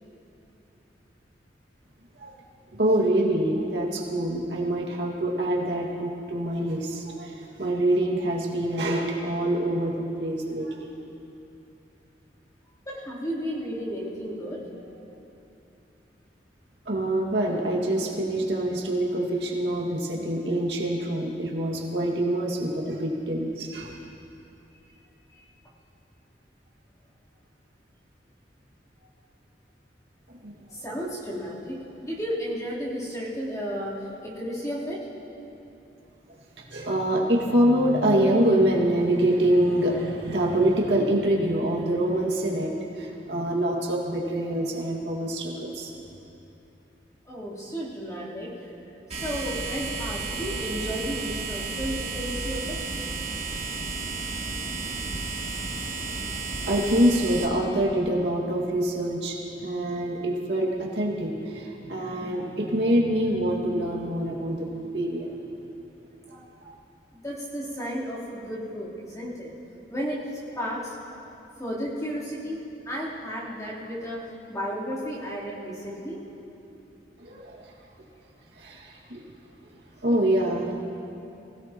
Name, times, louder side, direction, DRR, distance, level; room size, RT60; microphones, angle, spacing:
voice 1, 2.7-9.9 10.2-10.9 16.9-24.0 30.3-30.5 36.6-45.9 56.6-59.4 59.6-65.3 66.3-66.7 77.2-77.6 78.6-79.2 80.0-80.7, right 1 dB, 75° right, -3 dB, 2.1 m, -25 dB
voice 2, 12.9-14.6 25.3-25.4 30.7-33.9 34.2-35.0 47.3-48.5 49.1-52.8 67.1-69.5 69.9-70.2 70.6-70.9 71.6-72.6 72.9-74.2 74.5-76.2, equal, 20° left, -8 dB, 3.6 m, -33 dB
sound 1, 49.1-57.4, right 3 dB, 40° right, 3.1 m, -32 dB
24.5 x 16.5 x 3.0 m, 2.9 s
head